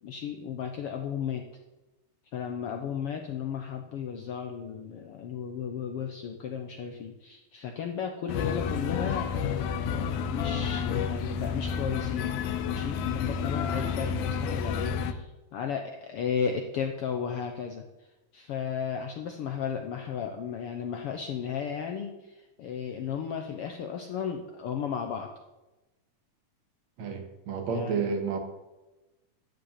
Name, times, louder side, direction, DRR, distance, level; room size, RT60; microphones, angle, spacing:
voice 1, 0.0-1.4 2.3-12.4 12.7-17.8 18.3-25.3 27.7-28.0, left 7 dB, 75° left, 4 dB, 1.4 m, -34 dB
sound 1, 8.3-15.1, left 6 dB, 90° left, 2.2 m, -30 dB
voice 2, 27.0-28.4, right 5 dB, 65° right, 5 dB, 2.5 m, -30 dB
13.0 x 5.3 x 8.3 m, 1.1 s
omnidirectional pair, 3.5 m